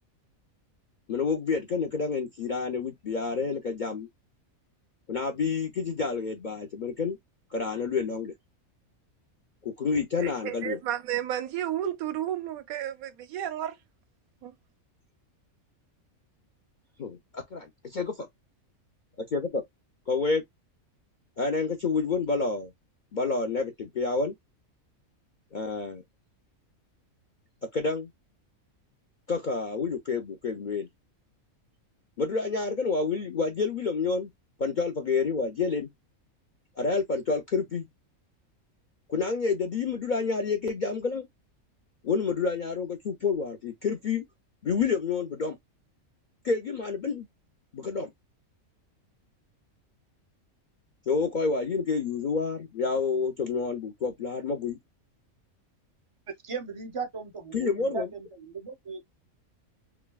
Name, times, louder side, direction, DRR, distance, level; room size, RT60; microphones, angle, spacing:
voice 1, 1.1-4.1 5.1-7.2 7.5-8.3 9.6-10.8 17.0-18.1 19.3-19.6 20.1-20.4 21.4-22.7 23.1-24.3 25.5-26.0 27.7-28.1 29.3-30.9 32.2-34.3 34.6-35.9 36.8-37.9 39.1-41.3 42.0-44.2 44.6-45.6 46.4-47.3 47.7-48.1 51.1-54.8 57.5-58.1, left 4 dB, 55° left, 0.5 m, -29 dB
voice 2, 10.2-13.7 14.4-14.5, right 11 dB, 85° right, 1.1 m, -32 dB
voice 3, 56.4-58.0 58.4-59.0, right 5 dB, 35° right, 0.6 m, -36 dB
5.9 x 2.2 x 2.3 m
omnidirectional pair, 1.5 m